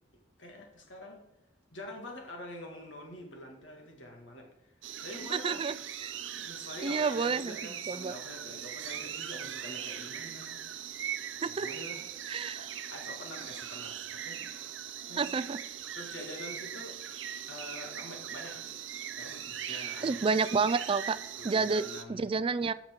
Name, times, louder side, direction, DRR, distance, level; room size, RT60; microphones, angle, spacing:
voice 1, 0.4-1.3 1.7-4.5 5.0-5.6 6.2-10.6 11.4-12.0 12.6-12.7 12.9-14.4 15.1-15.3 15.9-17.0 17.5-18.6 19.1-20.1 21.4-22.3, left 1 dB, 80° left, 1 dB, 2.1 m, -45 dB
sound 1, 4.8-22.0, right 9 dB, 85° right, 0.7 m, -40 dB
voice 2, 5.3-6.1 6.8-7.6 7.9-8.1 11.4-11.7 12.3-12.6 15.2-15.6 19.7-21.2 21.4-21.8 22.1-22.7, right 5 dB, 30° right, 15 dB, 0.3 m, -30 dB
13.5 x 6.0 x 3.7 m, 0.89 s
head